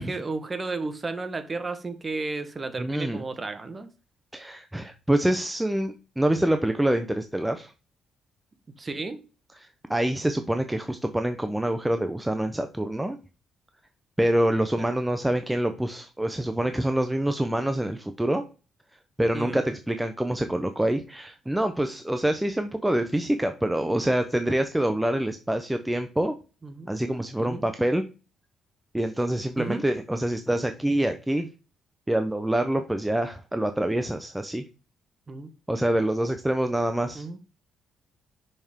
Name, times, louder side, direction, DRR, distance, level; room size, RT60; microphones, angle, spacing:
voice 1, 0.0-3.9 8.8-9.2 14.8-14.9 19.3-19.6 26.6-26.9 27.4-27.6 29.6-29.8 35.3-35.5 37.1-37.4, right 3 dB, 30° right, 1.2 m, -33 dB
voice 2, 2.8-3.2 4.3-7.7 9.6-13.2 14.2-18.4 19.2-26.3 26.9-28.0 28.9-31.5 32.1-34.6 35.7-37.2, right 1 dB, 5° right, 0.6 m, -26 dB
6.1 x 5.5 x 3.6 m
cardioid pair, 90°, 0 cm